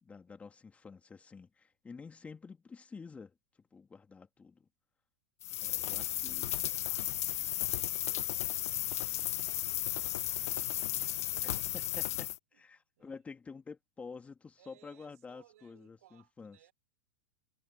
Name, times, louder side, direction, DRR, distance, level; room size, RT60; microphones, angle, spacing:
voice 1, 0.0-3.3 3.7-4.7 5.6-6.5 11.4-16.6, left 5 dB, 15° left, 3.1 m, -49 dB
sound 1, 5.4-12.4, left 14 dB, 75° left, 0.4 m, -34 dB
voice 2, 5.8-11.9 12.5-13.2 14.6-16.7, right 14 dB, 70° right, 5.8 m, -66 dB
hypercardioid pair, 110°, 8 cm